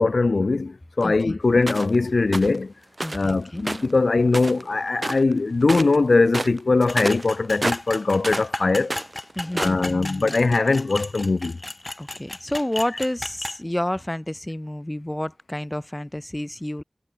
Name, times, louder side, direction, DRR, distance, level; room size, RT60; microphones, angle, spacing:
voice 1, 0.0-2.7 3.1-8.9 9.5-11.6, left 3 dB, 80° left, 0.5 m, -21 dB
voice 2, 1.0-1.4 3.0-3.7 9.4-10.4 12.0-16.8, left 1 dB, 20° left, 2.8 m, -30 dB
sound 1, 1.7-2.0 2.3-2.6 3.0-3.3 3.6-4.7 5.0-5.3 5.6-6.0 6.3-8.5 8.8-9.9, right 2 dB, 45° right, 0.5 m, -29 dB
sound 2, 6.9-13.6, left 1 dB, 35° left, 4.1 m, -34 dB
wide cardioid pair, 45°, 0 cm